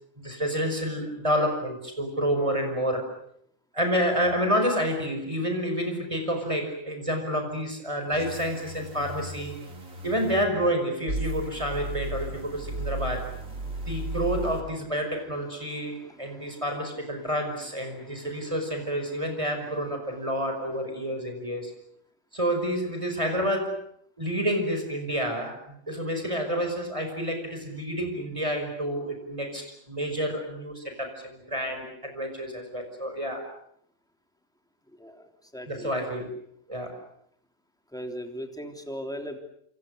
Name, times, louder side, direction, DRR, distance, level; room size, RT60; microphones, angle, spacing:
voice 1, 0.2-3.1 3.7-9.5 10.0-13.3 13.7-21.7 22.3-23.8 24.2-33.4 35.7-36.3 36.7-37.0, equal, 25° right, 4 dB, 5.6 m, -29 dB
sound 1, 8.1-10.4 11.1-14.6, right 1 dB, 80° right, 4.0 m, -35 dB
voice 2, 13.6-14.1 15.6-16.6 17.2-17.3 17.9-18.3 35.0-35.9 37.9-39.4, equal, 5° left, 4 dB, 3.4 m, -40 dB
28.0 x 27.5 x 6.7 m, 0.70 s
omnidirectional pair, 1.4 m